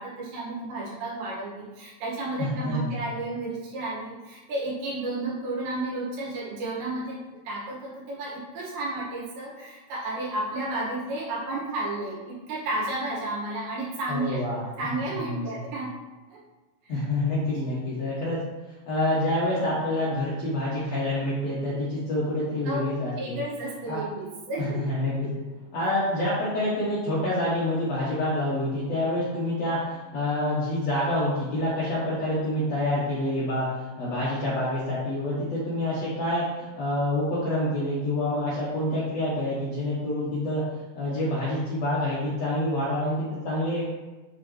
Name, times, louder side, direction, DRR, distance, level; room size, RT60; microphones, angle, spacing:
voice 1, 0.0-7.2 7.5-14.4 14.8-15.9 16.3-16.4 16.8-16.9 17.5-17.6 22.7-22.8 23.1-25.0, right 2 dB, 85° right, -7 dB, 4.0 m, -32 dB
voice 2, 2.4-3.0 14.1-14.9 15.2-15.6 16.9-18.4 18.9-23.4 23.9-24.0 24.6-25.3 25.7-33.7 34.0-40.6 40.9-43.8, left 1 dB, 90° left, -9 dB, 1.4 m, -27 dB
8.5 x 3.9 x 3.2 m, 1.2 s
omnidirectional pair, 5.0 m